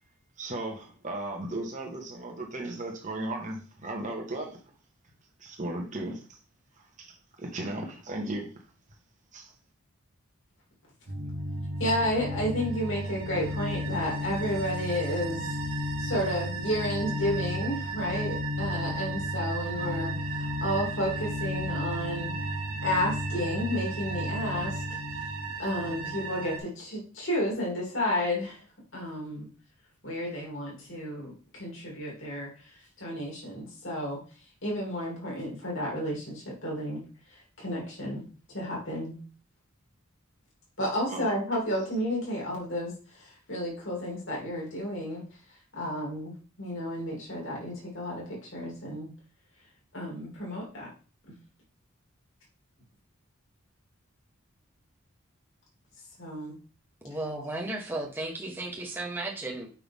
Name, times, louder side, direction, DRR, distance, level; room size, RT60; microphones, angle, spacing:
voice 1, 0.4-4.6 5.4-6.4 6.8-8.5 9.3-9.5 41.1-41.3, right 1 dB, 35° right, 1.5 m, -36 dB
sound 1, 11.1-26.6, right 1 dB, 85° right, 1.5 m, -33 dB
voice 2, 11.8-15.5 16.0-22.3 22.8-25.0 25.6-28.6 28.9-29.5 30.0-34.2 34.6-37.0 37.3-38.2 38.5-39.2 40.8-45.2 45.7-49.1 49.9-50.9 51.3-51.4 56.2-56.5, equal, 60° left, 3.0 m, -32 dB
voice 3, 57.0-59.7, right 2 dB, 10° right, 1.3 m, -34 dB
6.0 x 5.7 x 3.6 m
head